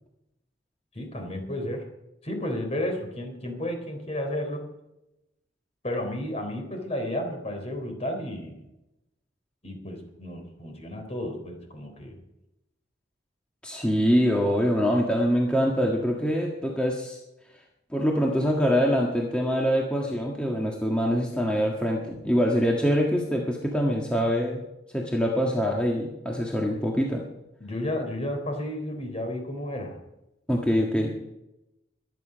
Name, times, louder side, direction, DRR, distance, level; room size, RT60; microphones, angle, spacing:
voice 1, 0.9-1.8 2.2-4.6 5.8-8.6 9.6-12.2 27.6-30.0, left 1 dB, 35° left, 4 dB, 3.8 m, -32 dB
voice 2, 13.6-17.2 17.9-24.6 24.9-27.2 30.5-31.1, equal, 5° left, -2 dB, 1.6 m, -24 dB
23.5 x 9.5 x 5.2 m, 0.92 s
head